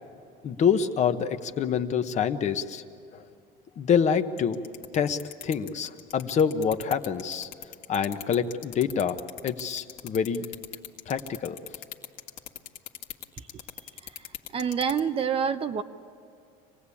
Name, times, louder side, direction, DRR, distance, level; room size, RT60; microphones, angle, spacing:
voice 1, 0.4-2.8 3.1-3.2 3.8-4.6 4.9-7.5 7.9-9.2 9.4-10.4 11.1-11.6, left 7 dB, 40° left, 7 dB, 1.1 m, -26 dB
sound 1, 4.4-15.0, left 12 dB, 80° left, 1.7 m, -39 dB
voice 2, 14.5-15.8, right 7 dB, 30° right, 10 dB, 0.7 m, -26 dB
26.5 x 18.5 x 8.5 m, 2.4 s
cardioid pair, 130°, 19 cm